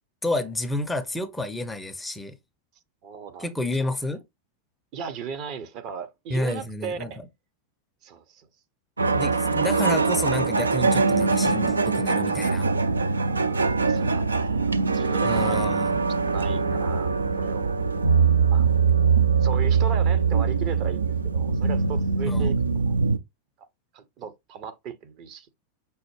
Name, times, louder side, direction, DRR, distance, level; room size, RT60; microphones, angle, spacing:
voice 1, 0.2-2.3 3.4-4.2 6.3-7.1 9.2-12.7 15.2-15.9 22.2-22.5, left 1 dB, 10° left, 0.5 m, -30 dB
voice 2, 3.0-3.9 4.9-7.2 8.0-8.5 13.8-15.6 16.3-17.7 18.5-18.7 19.4-22.5 22.9-23.0 23.9-25.5, right 6 dB, 40° right, 0.6 m, -37 dB
sound 1, 9.0-23.2, right 5 dB, 75° right, 0.3 m, -22 dB
5.4 x 2.0 x 3.1 m
figure-of-eight pair, 90°, 0 cm